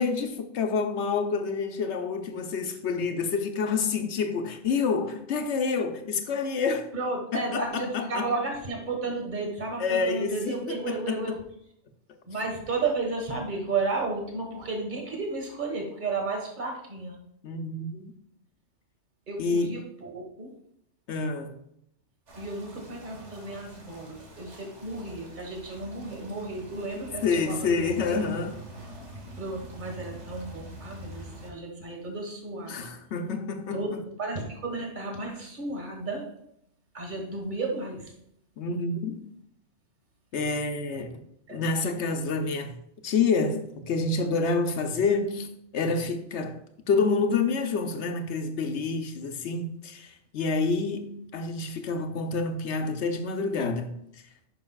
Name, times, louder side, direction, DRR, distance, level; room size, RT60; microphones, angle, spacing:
voice 1, 0.0-6.9 7.3-8.3 9.8-11.2 17.4-18.1 19.4-19.8 21.1-21.5 27.2-28.6 32.6-34.0 38.6-39.2 40.3-41.2 41.5-42.8 43.0-45.5 45.7-46.6 46.9-54.0, left 4 dB, 75° left, 1.1 m, -28 dB
voice 2, 6.9-11.4 12.3-17.1 19.3-20.5 22.4-28.2 29.4-32.9 33.7-36.3 36.9-38.1 41.5-41.6, right 3 dB, 40° right, 1.6 m, -33 dB
sound 1, 22.3-31.5, right 1 dB, 80° right, 1.8 m, -45 dB
9.7 x 6.0 x 2.4 m
omnidirectional pair, 1.2 m